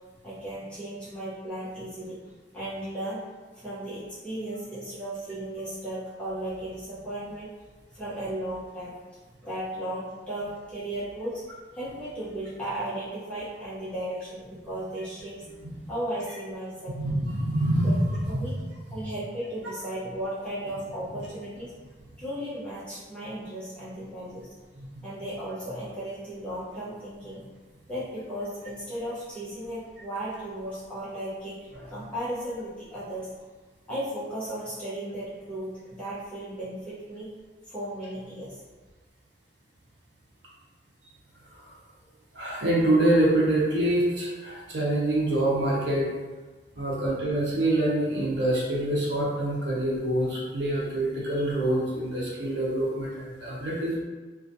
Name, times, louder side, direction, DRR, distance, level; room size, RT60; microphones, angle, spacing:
voice 1, 0.2-2.2 2.5-3.2 3.6-7.5 7.9-9.0 9.4-11.4 11.7-15.5 15.9-17.0 17.8-17.9 18.3-18.6 18.9-21.7 22.2-24.5 25.0-27.4 27.9-33.3 33.9-37.3 37.7-38.6, right 1 dB, 5° left, -11 dB, 0.8 m, -35 dB
voice 2, 17.0-18.2 24.8-25.0 42.3-46.1 46.8-54.0, right 1 dB, 70° right, -5 dB, 0.7 m, -25 dB
2.4 x 2.3 x 2.6 m, 1.3 s
head